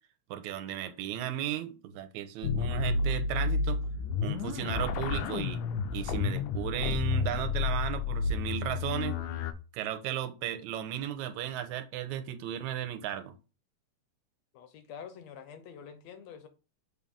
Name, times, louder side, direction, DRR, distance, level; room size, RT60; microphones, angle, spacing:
voice 1, 0.3-3.8 4.2-5.6 5.9-9.2 9.7-13.3, right 11 dB, 85° right, 2.0 m, -35 dB
sound 1, 2.4-9.5, left 5 dB, 85° left, 2.1 m, -31 dB
voice 2, 14.5-16.5, left 7 dB, 70° left, 1.9 m, -47 dB
7.2 x 4.1 x 3.5 m
omnidirectional pair, 3.4 m